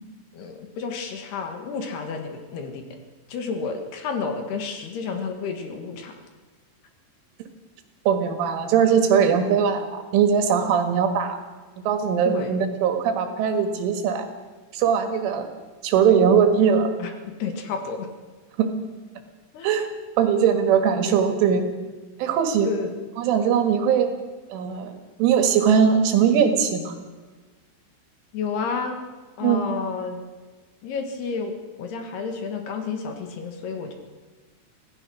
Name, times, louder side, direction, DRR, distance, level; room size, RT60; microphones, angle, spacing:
voice 1, 0.3-3.0 3.3-6.1 12.2-12.6 17.0-17.1 17.4-18.1 19.5-19.7 22.6-22.9 28.3-29.0 29.4-30.2 30.8-33.9, left 5 dB, 65° left, 5 dB, 3.4 m, -31 dB
voice 2, 8.1-11.4 11.9-14.3 14.7-15.5 15.8-16.9 18.6-18.7 19.6-19.9 20.2-21.6 22.2-22.7 23.2-24.1 24.5-24.9 25.2-27.0 29.4-29.6, right 7 dB, 85° right, 6 dB, 4.3 m, -20 dB
25.0 x 16.5 x 6.3 m, 1.3 s
omnidirectional pair, 5.5 m